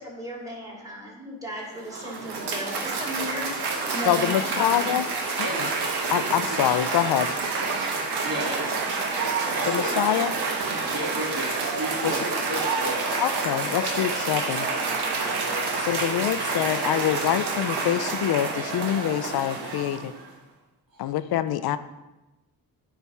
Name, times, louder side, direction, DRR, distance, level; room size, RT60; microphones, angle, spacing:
voice 1, 0.0-4.9, equal, 10° right, -4 dB, 2.7 m, -35 dB
Cheering / Applause, 1.6-20.3, right 4 dB, 80° right, 1.3 m, -28 dB
voice 2, 4.1-5.1 5.4-5.5 6.1-7.3 9.7-10.3 12.0-12.2 13.2-14.7 15.8-20.1 21.0-21.8, left 11 dB, 70° left, 13 dB, 0.5 m, -25 dB
voice 3, 5.4-5.7 6.1-6.6 8.2-8.9 9.5-10.0 10.9-12.2 12.5-13.1 20.9-21.0, right 1 dB, 60° right, -2 dB, 2.2 m, -33 dB
9.4 x 3.4 x 5.5 m, 1.0 s
cardioid pair, 75°, 39 cm